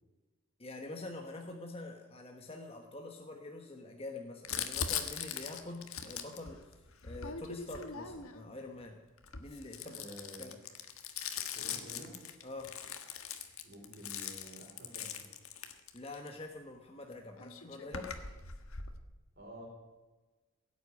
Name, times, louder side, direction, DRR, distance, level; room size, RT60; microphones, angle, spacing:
voice 1, 0.6-9.0 9.4-10.1 10.4-10.6 12.4-12.7 15.9-18.2, left 2 dB, 25° left, 2 dB, 1.2 m, -46 dB
Crumpling crinkling, 4.4-8.5 9.2-16.3 17.1-17.2 17.4-19.0, left 7 dB, 75° left, 1.5 m, -41 dB
voice 2, 9.9-10.5 11.5-12.2 13.6-15.3 19.4-19.7, right 1 dB, 45° right, -1 dB, 4.4 m, -50 dB
17.5 x 8.5 x 9.4 m, 1.2 s
head